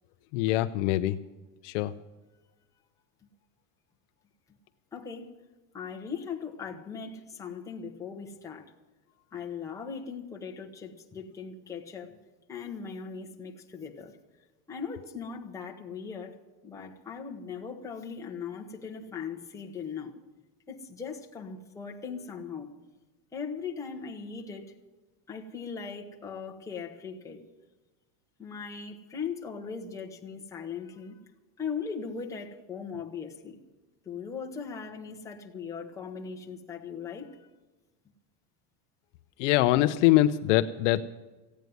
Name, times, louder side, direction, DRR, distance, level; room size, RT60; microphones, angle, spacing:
voice 1, 0.3-1.2 1.6-1.9 39.4-41.0, left 15 dB, 50° left, 10 dB, 0.6 m, -23 dB
voice 2, 4.9-5.3 5.7-8.7 9.3-12.2 12.5-14.2 14.7-16.4 16.6-20.1 20.7-22.7 23.3-24.7 25.3-27.4 28.4-31.2 31.6-33.6 34.0-37.4, left 6 dB, 5° left, 1 dB, 0.9 m, -39 dB
15.5 x 9.3 x 9.3 m, 1.2 s
cardioid pair, 175°, 45 cm